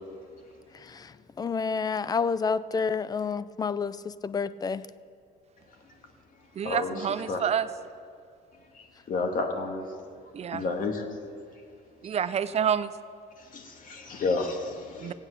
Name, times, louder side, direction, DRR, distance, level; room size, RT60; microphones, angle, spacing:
voice 1, 0.7-4.9, left 5 dB, 25° left, 16 dB, 0.4 m, -29 dB
voice 2, 6.6-7.7 10.3-10.6 12.0-12.9 15.0-15.1, right 8 dB, 40° right, 13 dB, 0.6 m, -28 dB
voice 3, 8.7-9.8 10.5-11.1 12.0-12.1 13.4-15.1, left 3 dB, 55° left, 3 dB, 2.0 m, -31 dB
17.0 x 8.8 x 6.7 m, 2.3 s
cardioid pair, 110°, 17 cm